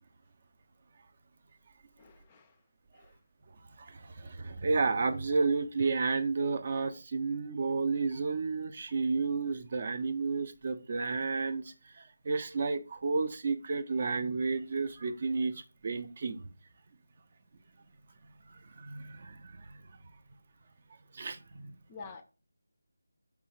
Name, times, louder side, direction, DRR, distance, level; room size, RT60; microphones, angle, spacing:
voice 1, 2.0-2.6 2.9-3.2 21.9-22.2, left 4 dB, 20° left, 0.4 m, -48 dB
voice 2, 3.8-16.4 18.8-19.8 21.1-21.7, right 4 dB, 40° right, 0.4 m, -32 dB
4.7 x 3.3 x 3.1 m
figure-of-eight pair, 165°, 0 cm